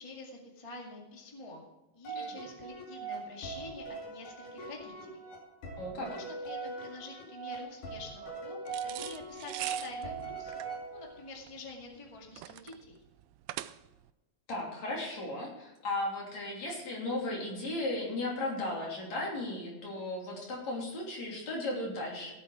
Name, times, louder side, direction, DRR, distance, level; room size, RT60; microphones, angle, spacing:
voice 1, 0.0-1.6 1.9-5.2 5.9-10.6 10.9-13.0, left 3 dB, 15° left, -1 dB, 1.6 m, -47 dB
sound 1, 2.0-11.3, right 4 dB, 85° left, 4.2 m, -41 dB
voice 2, 5.8-6.1 14.5-22.3, left 2 dB, 60° left, -2 dB, 4.5 m, -36 dB
sound 2, 8.7-14.1, right 14 dB, 80° right, 1.5 m, -43 dB
16.5 x 8.4 x 4.9 m, 1.0 s
omnidirectional pair, 3.5 m